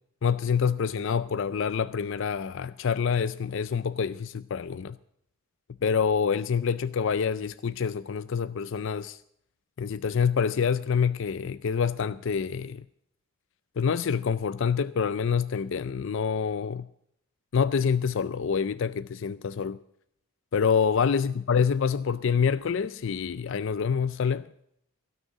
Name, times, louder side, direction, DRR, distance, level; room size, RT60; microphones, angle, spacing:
voice 1, 0.2-5.0 5.8-9.2 9.8-12.8 13.8-16.9 17.5-19.8 20.5-24.5, left 6 dB, 60° left, 0.4 m, -26 dB
16.5 x 6.5 x 9.1 m
head